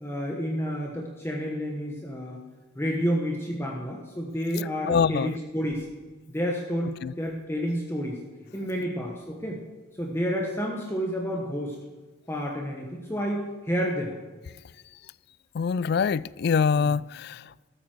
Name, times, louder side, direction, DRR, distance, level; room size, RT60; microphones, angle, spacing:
voice 1, 0.0-2.4 2.7-5.8 6.3-8.2 8.5-9.6 10.0-11.8 12.3-14.1, equal, 10° left, 1.3 m, -30 dB
voice 2, 4.9-5.4 7.0-7.1 15.5-17.4, left 6 dB, 50° left, 0.3 m, -24 dB
13.5 x 12.5 x 4.6 m
head